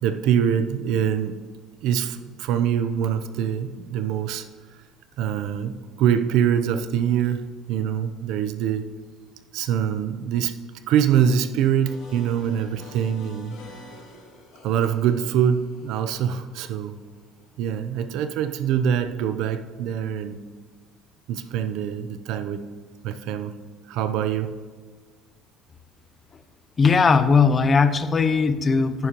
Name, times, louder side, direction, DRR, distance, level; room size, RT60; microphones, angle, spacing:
voice 1, 0.0-1.4 1.8-4.4 5.2-8.9 9.5-10.5 10.9-13.6 14.6-17.0 17.6-20.4 21.3-22.7 23.0-23.5 23.9-24.6, right 8 dB, 75° right, 10 dB, 0.6 m, -24 dB
sound 1, 11.8-17.6, left 1 dB, 80° left, 2.7 m, -47 dB
voice 2, 26.8-29.1, left 5 dB, 30° left, 12 dB, 0.5 m, -18 dB
10.0 x 9.5 x 2.9 m, 1.5 s
cardioid pair, 115°, 0 cm